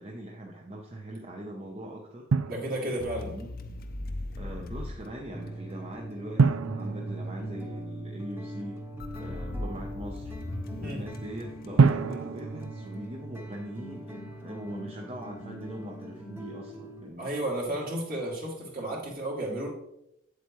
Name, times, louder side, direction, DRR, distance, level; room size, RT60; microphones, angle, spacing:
voice 1, 0.0-2.3 2.8-3.5 4.4-8.8 9.2-10.3 10.7-17.3, right 1 dB, 30° right, 0 dB, 0.8 m, -41 dB
Drum, 2.3-3.4 6.4-8.2 11.8-13.8, right 5 dB, 80° right, 0.4 m, -27 dB
voice 2, 2.4-3.3 10.8-11.0 17.2-19.7, right 1 dB, 45° right, -4 dB, 2.5 m, -32 dB
sound 1, 3.0-6.0 9.0-12.4, left 2 dB, 45° left, 0.6 m, -39 dB
sound 2, 5.3-17.1, right 1 dB, 10° right, 1.1 m, -41 dB
8.2 x 7.9 x 3.1 m, 0.80 s
head